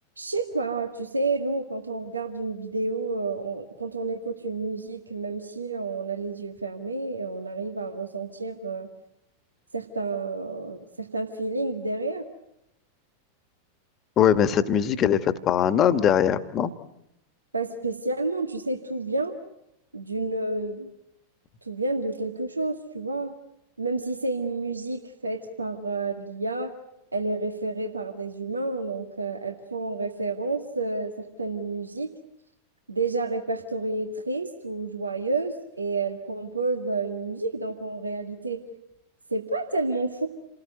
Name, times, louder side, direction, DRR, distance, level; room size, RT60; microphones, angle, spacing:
voice 1, 0.2-8.9 9.7-12.3 17.5-19.4 19.9-20.9 21.7-23.4 23.8-26.7 27.1-32.1 32.9-38.6 39.3-40.3, right 3 dB, 80° right, 6 dB, 2.0 m, -30 dB
voice 2, 14.2-16.7, left 9 dB, 30° left, 12 dB, 1.6 m, -21 dB
29.5 x 19.5 x 9.3 m, 0.85 s
figure-of-eight pair, 90°, 0 cm